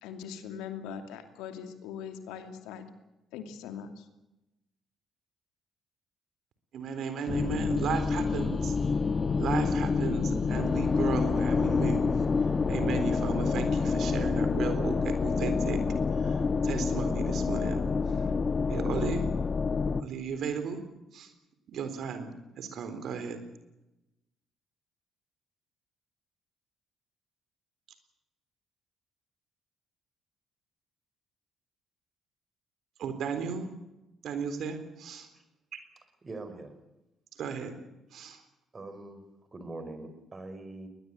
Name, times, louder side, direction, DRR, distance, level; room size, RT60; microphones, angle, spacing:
voice 1, 0.0-2.8 3.3-4.1, left 7 dB, 75° left, 7 dB, 2.6 m, -41 dB
voice 2, 6.7-8.8 9.4-12.1 12.7-15.8 16.2-17.8 18.7-19.3 20.0-20.8 21.1-21.3 21.7-22.3 22.6-23.4 33.0-33.7 34.2-35.3 37.4-37.7 38.1-38.4, right 6 dB, 65° right, 9 dB, 3.9 m, -34 dB
sound 1, 7.3-20.0, left 4 dB, 40° left, 1.2 m, -28 dB
voice 3, 36.2-36.7 38.7-39.2 39.5-40.9, right 2 dB, 35° right, 9 dB, 5.6 m, -42 dB
21.0 x 20.5 x 8.3 m, 0.95 s
hypercardioid pair, 50°, 0 cm